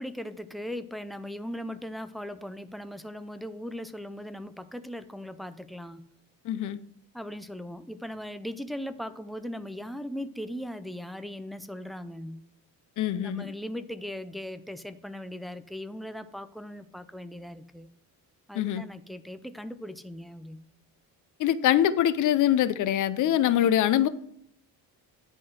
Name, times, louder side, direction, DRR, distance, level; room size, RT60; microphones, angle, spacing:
voice 1, 0.0-6.0 7.1-12.4 13.2-17.9 18.5-20.6, equal, ahead, 0.3 m, -39 dB
voice 2, 6.4-6.8 13.0-13.5 18.5-18.8 21.4-24.1, left 11 dB, 55° left, 0.6 m, -24 dB
10.0 x 3.8 x 6.3 m
cardioid pair, 135°, 36 cm